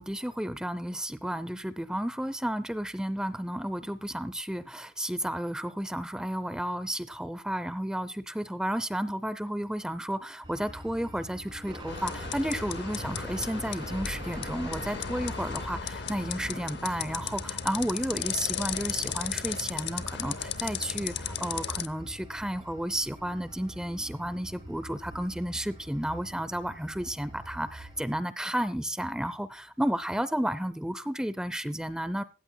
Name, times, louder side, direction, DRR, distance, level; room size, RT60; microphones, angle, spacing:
voice 1, 0.0-32.2, equal, 5° right, 15 dB, 0.5 m, -32 dB
sound 1, 10.4-28.2, right 1 dB, 25° right, 4.3 m, -45 dB
sound 2, 11.9-21.9, left 7 dB, 55° left, 0.8 m, -35 dB
16.5 x 15.0 x 2.2 m, 0.35 s
head